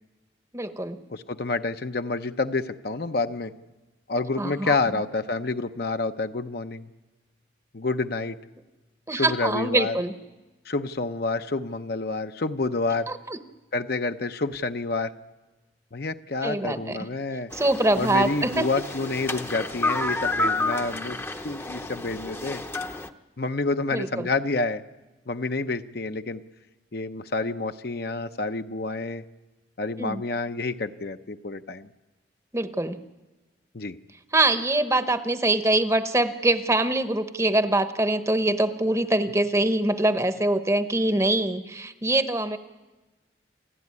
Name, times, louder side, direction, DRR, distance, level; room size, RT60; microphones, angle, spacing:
voice 1, 0.5-1.0 4.4-4.8 9.1-10.1 13.1-13.4 16.4-17.0 17.5-18.7 23.9-24.3 30.0-30.2 32.5-33.0 34.3-42.6, right 2 dB, 15° right, 10 dB, 0.9 m, -24 dB
voice 2, 1.1-3.5 4.1-6.9 7.7-8.4 9.1-10.0 10.7-13.1 13.7-15.1 15.9-17.5 17.9-21.2 21.4-22.6 23.4-24.8 25.3-26.4 26.9-29.2 29.8-31.9 33.7-34.0, left 3 dB, 55° left, 8 dB, 0.8 m, -28 dB
sound 1, 17.5-23.1, left 2 dB, 15° left, 0.8 m, -30 dB
29.0 x 13.0 x 9.7 m, 1.2 s
head